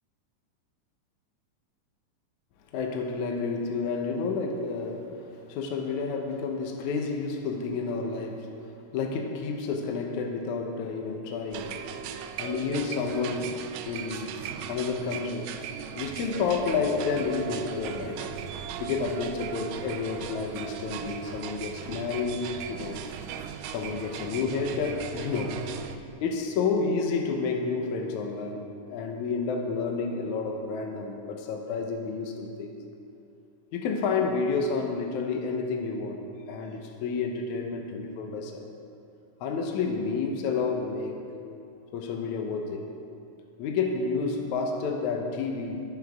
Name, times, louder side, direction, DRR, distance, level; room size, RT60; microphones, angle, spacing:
voice 1, 2.7-11.8 12.4-13.5 13.9-14.3 14.7-15.5 16.0-18.3 18.8-23.1 23.7-25.6 26.2-32.8 33.7-36.2 36.5-38.7 39.4-41.3 41.9-42.9 43.6-45.8, left 4 dB, 70° left, 2 dB, 2.1 m, -30 dB
sound 1, 11.5-26.0, right 8 dB, 80° right, 2.0 m, -38 dB
20.0 x 7.9 x 3.6 m, 2.6 s
omnidirectional pair, 3.9 m